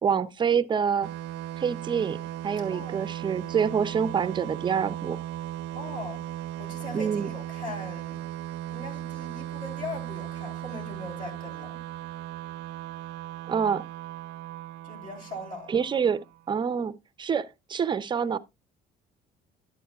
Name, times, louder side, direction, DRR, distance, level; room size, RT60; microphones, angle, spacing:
voice 1, 0.0-1.1 1.6-2.2 2.4-5.2 6.9-7.3 13.5-13.8 15.7-16.2 16.5-16.9 17.2-18.4, right 7 dB, 25° right, 0.5 m, -26 dB
sound 1, 1.0-16.4, right 13 dB, 85° right, 0.4 m, -37 dB
voice 2, 5.7-6.2 6.6-8.3 8.7-11.8 14.8-15.8, left 2 dB, 50° left, 3.6 m, -40 dB
11.5 x 8.4 x 2.3 m
cardioid pair, 145°, 17 cm